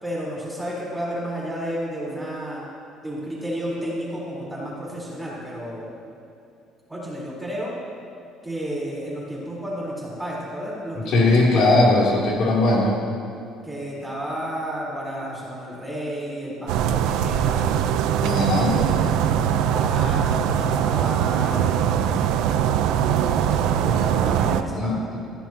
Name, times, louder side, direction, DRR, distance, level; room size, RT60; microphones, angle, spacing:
voice 1, 0.0-2.6 3.0-5.9 6.9-7.7 8.4-12.1 13.6-17.8 18.3-19.0 19.6-25.0, equal, 5° right, -6 dB, 4.4 m, -32 dB
voice 2, 11.1-13.0 18.2-18.9 24.7-25.2, left 2 dB, 55° left, -5 dB, 3.3 m, -19 dB
sound 1, 16.7-24.6, right 9 dB, 75° right, 0.8 m, -21 dB
25.0 x 15.0 x 3.0 m, 2.7 s
cardioid pair, 175°, 0 cm